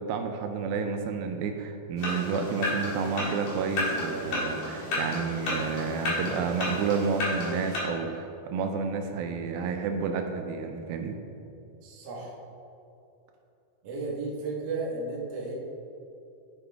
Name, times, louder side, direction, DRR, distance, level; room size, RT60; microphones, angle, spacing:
voice 1, 0.0-11.2, right 5 dB, 85° right, 5 dB, 2.4 m, -30 dB
sound 1, 2.0-7.8, left 2 dB, 60° left, 3.0 m, -32 dB
voice 2, 11.8-12.4 13.8-15.5, right 3 dB, 55° right, -4 dB, 1.9 m, -34 dB
11.5 x 4.8 x 3.4 m, 2.7 s
omnidirectional pair, 4.2 m